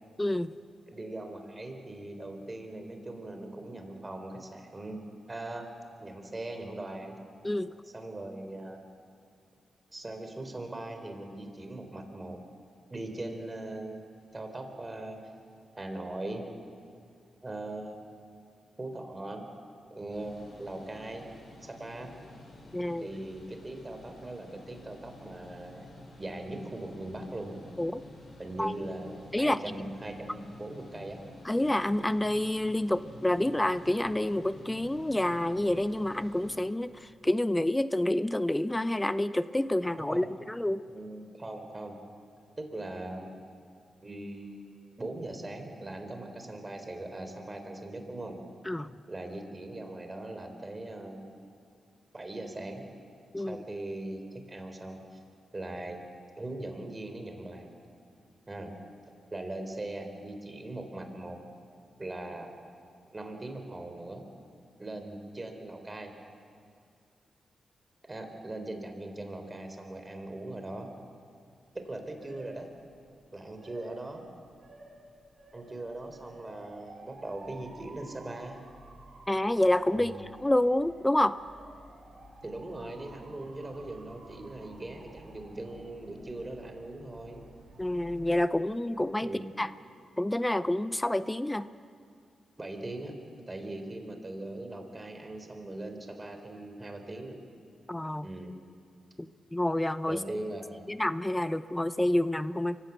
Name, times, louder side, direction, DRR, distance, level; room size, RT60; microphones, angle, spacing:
voice 1, 0.2-0.5 7.4-7.7 22.7-23.1 27.8-28.0 28.6-28.7 29.3-29.7 31.4-40.8 48.6-48.9 53.3-53.6 79.3-80.1 80.4-81.4 87.8-89.3 89.6-89.7 90.2-91.7 97.9-98.3 99.2-100.2 100.9-102.8, left 1 dB, 15° left, 14 dB, 0.6 m, -28 dB
voice 2, 0.9-5.7 6.0-7.2 7.9-8.8 9.9-12.4 12.9-15.2 15.8-16.4 17.4-18.3 18.8-19.4 19.9-21.3 21.6-22.1 23.0-25.9 26.2-27.6 28.4-31.2 40.1-40.3 40.9-41.9 42.6-43.3 44.0-48.4 49.1-51.4 52.1-52.8 53.4-55.2 55.5-56.1 56.3-57.7 58.5-58.7 59.3-61.4 62.0-62.5 63.1-64.2 64.8-66.1 68.1-70.9 71.7-72.7 73.3-74.2 75.5-78.6 79.9-80.2 82.4-87.5 89.2-89.6 92.6-93.1 93.5-97.4 98.2-98.6 100.1-100.9, right 2 dB, 30° right, 5 dB, 3.8 m, -40 dB
sound 1, 20.1-36.7, left 1 dB, 65° left, 6.5 m, -50 dB
Motor vehicle (road) / Siren, 71.6-88.5, right 2 dB, 50° right, 5.8 m, -52 dB
24.5 x 15.5 x 8.1 m, 2.3 s
cardioid pair, 55°, 0 cm